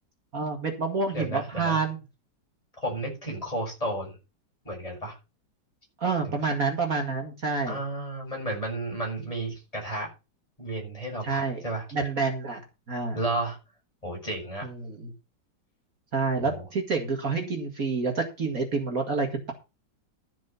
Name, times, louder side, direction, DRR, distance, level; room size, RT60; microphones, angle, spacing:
voice 1, 0.3-2.0 6.0-7.8 11.2-11.6 11.9-12.6 12.9-13.2 14.6-15.1 16.1-19.5, right 4 dB, 50° right, 3 dB, 2.4 m, -28 dB
voice 2, 1.1-1.8 2.8-4.2 4.6-5.2 6.2-6.4 7.7-10.1 10.6-11.8 13.1-13.6 14.0-14.7 16.4-16.7, right 1 dB, 20° left, -1 dB, 6.7 m, -32 dB
13.0 x 7.5 x 5.7 m, 0.29 s
omnidirectional pair, 2.0 m